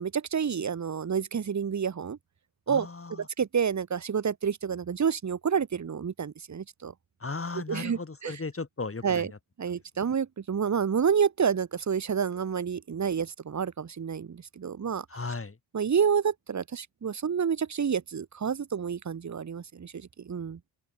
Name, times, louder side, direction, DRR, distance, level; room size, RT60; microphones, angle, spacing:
voice 1, 0.0-2.2 2.7-2.9 3.4-6.9 7.7-8.3 9.0-9.3 9.6-15.0 15.7-20.6, right 7 dB, 35° right, 1.0 m, -29 dB
voice 2, 2.7-3.3 7.2-9.4 10.0-10.1 15.1-15.6, left 3 dB, 25° left, 2.8 m, -36 dB
open air
cardioid pair, 90°, 48 cm